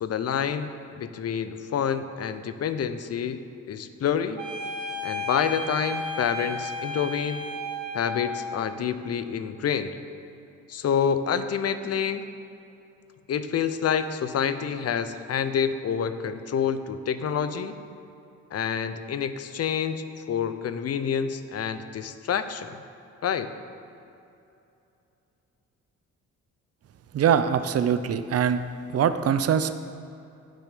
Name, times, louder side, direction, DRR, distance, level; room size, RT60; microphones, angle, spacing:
voice 1, 0.0-3.4 3.7-4.4 5.0-7.4 7.9-10.0 10.7-12.2 13.3-17.8 18.5-22.7 23.2-23.5, left 7 dB, 55° left, 11 dB, 0.7 m, -28 dB
sound 1, 4.4-8.6, left 1 dB, 75° right, 1.8 m, -33 dB
voice 2, 27.1-28.6 28.9-29.7, right 8 dB, 55° right, 11 dB, 0.6 m, -22 dB
16.0 x 6.4 x 5.1 m, 2.7 s
cardioid pair, 90°, 30 cm